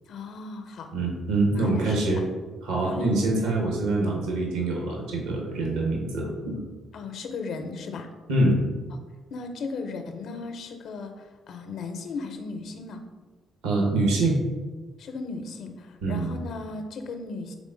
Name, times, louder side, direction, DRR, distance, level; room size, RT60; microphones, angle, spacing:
voice 1, 0.1-0.9 1.6-2.1 2.9-3.1 6.9-8.1 9.3-13.0 15.0-17.5, left 4 dB, 65° left, 6 dB, 0.5 m, -36 dB
voice 2, 0.9-2.2 2.6-6.6 8.3-8.6 13.6-14.4 16.0-16.3, right 2 dB, 75° right, -1 dB, 0.9 m, -25 dB
3.6 x 3.6 x 3.8 m, 1.3 s
hypercardioid pair, 45°, 0 cm